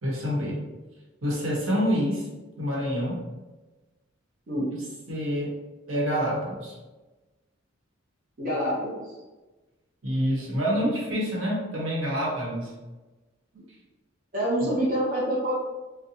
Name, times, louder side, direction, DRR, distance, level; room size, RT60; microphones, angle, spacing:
voice 1, 0.0-0.6 1.2-2.3 2.6-3.2 5.1-5.5 5.9-6.7 10.0-12.7, equal, 80° right, -4 dB, 1.1 m, -27 dB
voice 2, 8.4-9.1 13.5-13.6 14.3-15.5, equal, 45° right, -6 dB, 0.8 m, -26 dB
4.1 x 2.2 x 2.8 m, 1.2 s
head